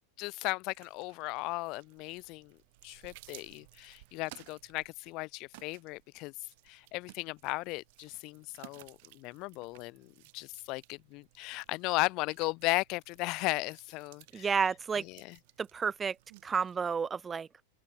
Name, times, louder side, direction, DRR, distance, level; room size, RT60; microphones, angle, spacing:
voice 1, 0.2-2.6 2.8-6.3 6.7-14.5 15.1-15.4, left 23 dB, 40° left, 0.9 m, -36 dB
sound 1, 0.7-16.8, right 24 dB, 50° right, 6.5 m, -58 dB
voice 2, 14.3-15.0 15.6-16.2 16.4-17.5, right 6 dB, 20° right, 0.4 m, -31 dB
open air
figure-of-eight pair, 90°, 0 cm